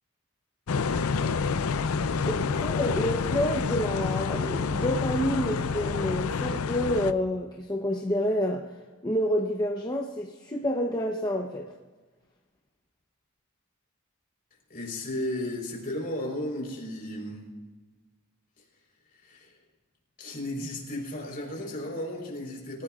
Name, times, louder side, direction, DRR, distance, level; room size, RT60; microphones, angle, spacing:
sound 1, 0.7-7.1, left 5 dB, 85° left, 0.5 m, -28 dB
voice 1, 2.2-8.8 9.0-11.7, equal, 20° left, 0 dB, 0.9 m, -28 dB
voice 2, 14.7-17.4 19.2-19.5 20.2-22.8, left 1 dB, 40° left, 0 dB, 4.2 m, -34 dB
25.5 x 15.5 x 2.5 m, 1.3 s
head